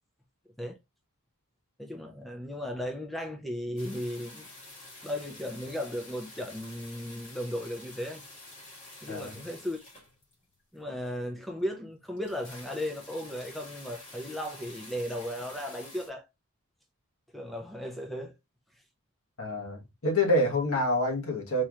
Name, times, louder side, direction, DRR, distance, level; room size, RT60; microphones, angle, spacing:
voice 1, 1.8-4.5 5.0-8.2 9.0-9.9 10.7-16.3 17.3-18.3, equal, ahead, 0.5 m, -36 dB
sound 1, 3.8-10.5 11.1-11.2 11.5-11.6 11.8-11.9 12.0-16.1, left 2 dB, 35° left, 1.9 m, -49 dB
voice 2, 9.1-9.4 19.4-21.6, left 1 dB, 65° left, 1.3 m, -27 dB
4.3 x 3.0 x 2.4 m
head